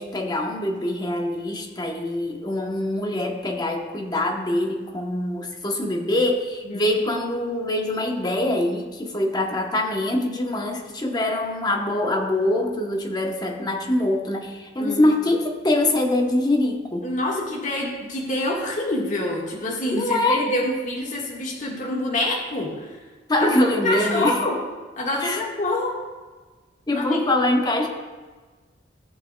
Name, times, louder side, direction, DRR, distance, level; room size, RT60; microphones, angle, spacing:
voice 1, 0.0-17.1 19.9-20.4 23.3-24.4 25.2-25.4 26.9-27.9, left 1 dB, 20° left, 2 dB, 0.9 m, -24 dB
voice 2, 14.8-15.1 17.0-22.9 23.4-23.6 23.8-24.6 25.0-25.9 26.9-27.2, left 1 dB, 45° left, -3 dB, 1.5 m, -26 dB
15.0 x 6.8 x 2.2 m, 1.4 s
head